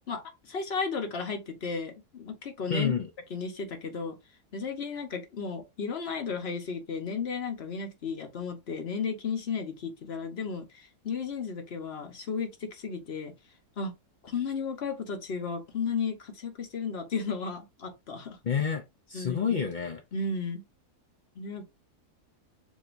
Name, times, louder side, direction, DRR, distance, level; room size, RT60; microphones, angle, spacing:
voice 1, 0.1-2.9 3.3-4.2 4.5-13.3 13.8-13.9 14.2-18.4 19.1-19.4 20.1-20.6 21.3-21.6, left 5 dB, 45° left, 1.2 m, -34 dB
voice 2, 2.7-3.1 18.4-18.8 19.1-20.0, left 6 dB, 65° left, 0.4 m, -28 dB
7.4 x 2.8 x 2.6 m
omnidirectional pair, 1.7 m